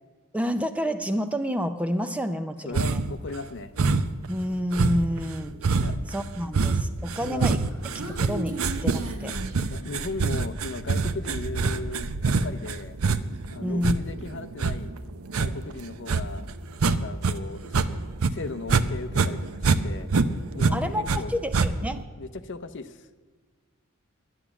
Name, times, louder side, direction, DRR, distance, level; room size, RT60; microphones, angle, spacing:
voice 1, 0.3-3.0 4.3-5.5 6.1-7.6 8.2-9.3 13.6-13.9 20.7-22.0, equal, 5° right, 9 dB, 0.5 m, -29 dB
voice 2, 2.6-3.7 5.8-6.0 7.2-7.5 9.7-13.0 13.5-14.9 15.3-16.4 16.8-17.7 18.2-20.1 20.5-21.3 22.2-23.1, left 3 dB, 55° left, 12 dB, 0.7 m, -37 dB
sound 1, 2.7-3.2 3.8-4.3 4.7-17.4 17.6-18.9 19.1-21.2 21.5-22.0, right 4 dB, 70° right, 0.6 m, -25 dB
Human voice, 7.4-10.4, right 1 dB, 90° right, 1.6 m, -37 dB
11.0 x 9.9 x 7.1 m, 1.4 s
head